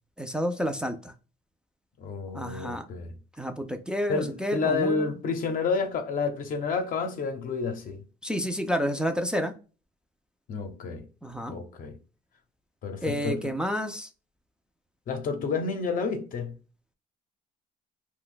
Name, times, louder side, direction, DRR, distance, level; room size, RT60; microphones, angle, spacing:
voice 1, 0.2-1.1 2.3-2.9 3.4-5.1 8.2-9.5 11.2-11.6 13.0-14.1, equal, 5° right, 0.4 m, -30 dB
voice 2, 2.0-3.1 4.1-8.0 10.5-11.1 11.5-12.0 12.8-13.5 15.1-16.5, left 4 dB, 55° left, 0.7 m, -30 dB
2.5 x 2.2 x 3.8 m
cardioid pair, 110°, 17 cm